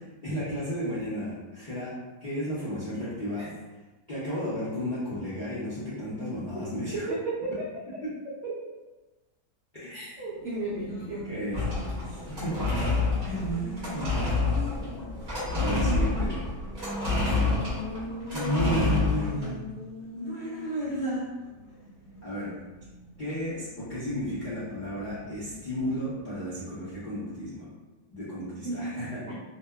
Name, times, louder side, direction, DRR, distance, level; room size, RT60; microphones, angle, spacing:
voice 1, 0.2-1.9 2.2-3.5 4.1-7.1 9.7-10.0 11.2-11.7 12.1-13.0 13.2-14.2 15.5-16.4 18.3-19.6 20.1-21.3 22.2-22.5 23.2-27.7 28.1-29.2, equal, 65° left, -12 dB, 0.4 m, -33 dB
voice 2, 6.5-7.6 8.4-8.5 9.9-11.3 15.5-16.3 17.1-18.1 28.6-29.0 29.3-29.4, right 3 dB, 85° right, -7 dB, 0.6 m, -35 dB
Race car auto racing, 10.1-26.4, equal, 85° left, 1.3 m, -41 dB
sound 1, 11.5-19.5, left 3 dB, 40° right, 0.6 m, -28 dB
2.7 x 2.1 x 2.2 m, 1.1 s
omnidirectional pair, 1.8 m